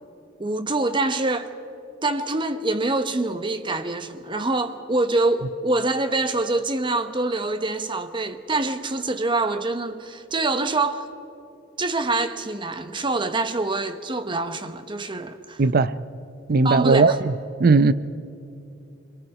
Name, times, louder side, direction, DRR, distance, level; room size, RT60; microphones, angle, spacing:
voice 1, 0.4-1.5 2.0-11.1 11.8-15.6 16.6-17.2, right 2 dB, 25° right, 0.9 m, -25 dB
voice 2, 15.6-15.9 16.5-17.3 17.6-17.9, right 3 dB, 50° right, 0.5 m, -17 dB
26.5 x 22.5 x 4.9 m
head